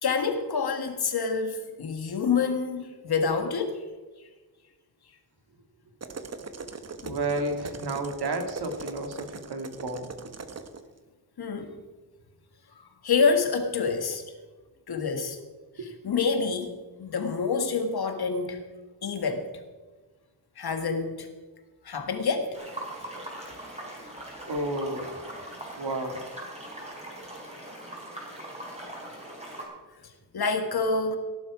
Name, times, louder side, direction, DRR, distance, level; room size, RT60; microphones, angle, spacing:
voice 1, 0.0-3.9 7.0-7.2 11.4-11.8 13.0-14.2 14.9-15.4 15.8-18.6 19.0-19.6 20.6-21.3 21.8-22.6 23.5-23.6 30.0-31.2, left 5 dB, 75° left, 1.8 m, -27 dB
sound 1, 6.0-10.8, right 5 dB, 40° right, 1.0 m, -40 dB
voice 2, 7.0-10.1 15.8-15.9 24.5-25.1 25.8-26.2, right 2 dB, 90° right, 2.3 m, -31 dB
sound 2, 22.5-29.6, right 1 dB, 15° right, 4.2 m, -41 dB
16.5 x 11.5 x 4.9 m
wide cardioid pair, 180°, 38 cm